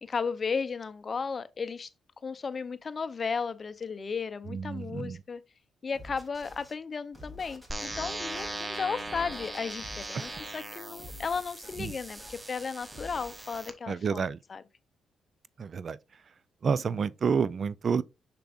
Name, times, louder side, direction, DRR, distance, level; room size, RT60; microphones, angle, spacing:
voice 1, 0.0-1.9 2.2-5.4 5.8-14.6, left 5 dB, 40° left, 0.6 m, -35 dB
voice 2, 4.5-5.2 10.1-10.3 11.8-11.9 13.9-14.4 15.6-16.0 16.6-18.0, right 6 dB, 50° right, 0.4 m, -29 dB
sound 1, 5.9-6.7 7.1-10.6 11.0-13.6, left 1 dB, 10° right, 3.0 m, -48 dB
sound 2, 7.7-13.7, right 2 dB, 30° right, 1.2 m, -39 dB
6.7 x 6.0 x 2.5 m
cardioid pair, 80°, 0 cm